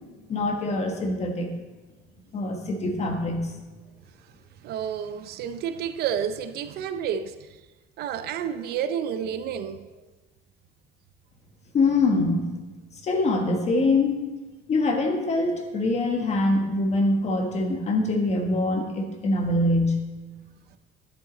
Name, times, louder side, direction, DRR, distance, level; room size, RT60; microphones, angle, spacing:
voice 1, 0.3-1.5 2.3-3.5 11.7-12.5 13.0-14.2 14.7-20.0, left 2 dB, 35° left, 1.3 m, -24 dB
voice 2, 4.6-7.3 8.0-9.9, right 8 dB, 55° right, 0.5 m, -30 dB
10.5 x 7.8 x 4.0 m
cardioid pair, 150°, 19 cm